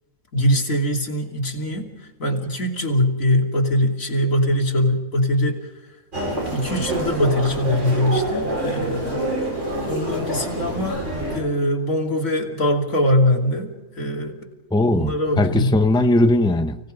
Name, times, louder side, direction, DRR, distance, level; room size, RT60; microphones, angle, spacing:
voice 1, 0.3-1.9 2.2-5.7 6.5-9.2 9.9-14.3 14.8-15.7, left 1 dB, 85° left, 3.4 m, -22 dB
Human voice, 6.1-11.4, right 1 dB, 65° right, 7.8 m, -26 dB
voice 2, 14.7-16.8, left 1 dB, 5° left, 0.8 m, -19 dB
30.0 x 18.5 x 5.2 m
omnidirectional pair, 1.4 m